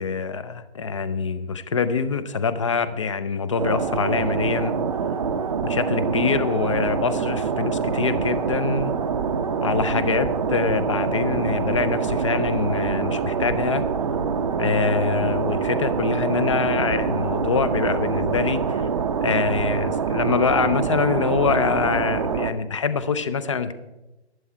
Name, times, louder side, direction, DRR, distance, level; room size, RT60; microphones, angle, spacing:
voice 1, 0.0-4.7 5.6-8.9 9.6-13.8 14.6-18.9 19.2-23.7, left 5 dB, 30° left, 13 dB, 0.5 m, -24 dB
sound 1, 3.6-22.5, right 6 dB, 30° right, 0.6 m, -25 dB
12.0 x 11.0 x 4.4 m, 1.0 s
figure-of-eight pair, 145°, 34 cm